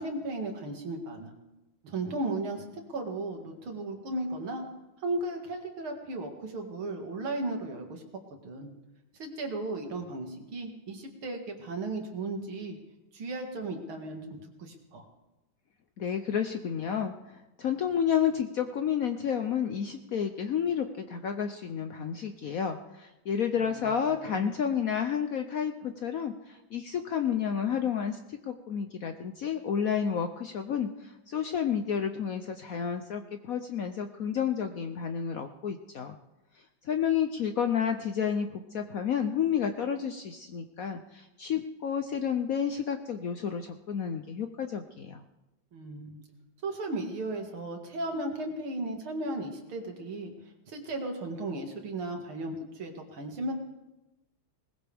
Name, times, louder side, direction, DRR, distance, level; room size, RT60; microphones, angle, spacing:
voice 1, 0.0-1.3 1.8-4.7 5.0-8.0 8.4-8.7 9.2-12.8 13.1-15.1 23.7-24.5 45.7-46.2 46.6-50.3 50.7-53.5, right 2 dB, 90° right, 2 dB, 2.9 m, -35 dB
voice 2, 16.0-36.2 36.8-45.2, left 8 dB, 65° left, 7 dB, 0.9 m, -31 dB
20.5 x 19.5 x 3.5 m, 1.0 s
omnidirectional pair, 2.2 m